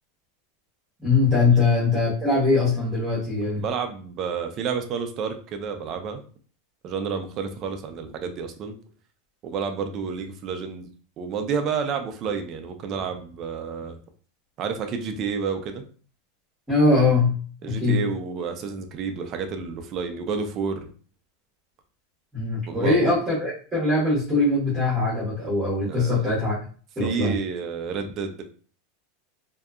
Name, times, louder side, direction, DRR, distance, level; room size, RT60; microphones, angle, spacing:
voice 1, 1.0-3.6 16.7-17.4 17.7-18.0 22.3-26.6 27.0-27.4, left 3 dB, 10° right, -9 dB, 0.9 m, -21 dB
voice 2, 3.6-6.2 6.8-8.7 9.4-10.9 11.2-14.0 14.6-15.8 17.6-20.9 22.7-23.0 25.8-26.3 27.0-28.4, right 5 dB, 25° right, 6 dB, 0.3 m, -30 dB
2.6 x 2.2 x 2.3 m, 0.41 s
supercardioid pair, 180°, 0 cm